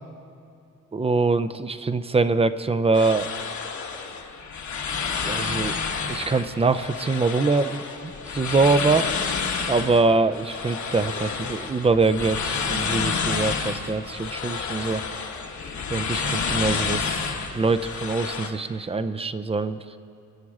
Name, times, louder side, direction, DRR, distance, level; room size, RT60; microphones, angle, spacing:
voice 1, 0.9-3.3 5.2-5.7 6.1-9.1 9.7-15.1 15.9-20.0, right 3 dB, 20° right, 12 dB, 0.4 m, -24 dB
sound 1, 2.9-18.5, left 5 dB, 65° left, 1.3 m, -29 dB
23.5 x 10.0 x 4.8 m, 2.6 s
wide cardioid pair, 165°, 31 cm